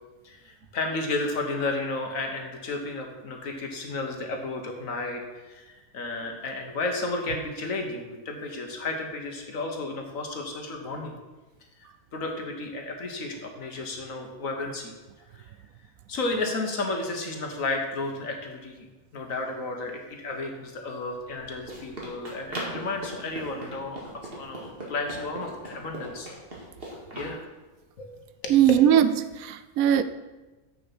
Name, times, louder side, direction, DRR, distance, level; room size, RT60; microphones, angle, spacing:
voice 1, 0.2-11.2 12.1-14.9 15.3-15.5 16.1-18.9 19.1-26.3 27.1-27.4 28.0-28.1 28.4-28.5, left 2 dB, 70° left, 1.7 m, -32 dB
Run, 21.1-27.3, right 1 dB, 45° right, 2.4 m, -39 dB
voice 2, 28.5-29.1 29.4-30.0, right 10 dB, 85° right, 1.0 m, -19 dB
7.8 x 6.7 x 6.1 m
omnidirectional pair, 1.4 m